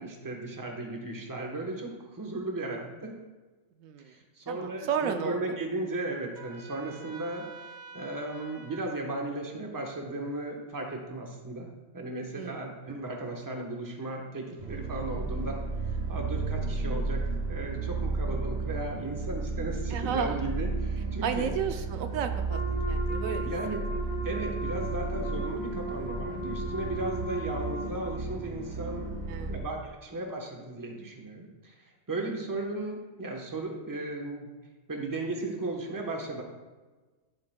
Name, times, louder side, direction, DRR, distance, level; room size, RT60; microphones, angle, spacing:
voice 1, 0.0-3.2 4.1-7.4 7.9-15.6 15.9-17.2 17.5-21.5 23.4-23.9 24.2-29.1 29.5-34.5 34.9-36.4, right 2 dB, 15° right, 0 dB, 0.9 m, -36 dB
voice 2, 3.8-4.1 4.5-5.4 12.4-12.6 19.9-20.4 21.2-23.5 29.3-29.6, right 7 dB, 80° right, 7 dB, 1.0 m, -33 dB
Trumpet, 6.3-8.9, right 3 dB, 50° right, 2.2 m, -48 dB
sound 1, 14.6-29.6, right 3 dB, 35° right, 1.7 m, -33 dB
Wind instrument woodwind instrument, 22.5-28.2, equal, 85° left, 2.6 m, -37 dB
10.5 x 7.7 x 2.2 m, 1.3 s
omnidirectional pair, 1.4 m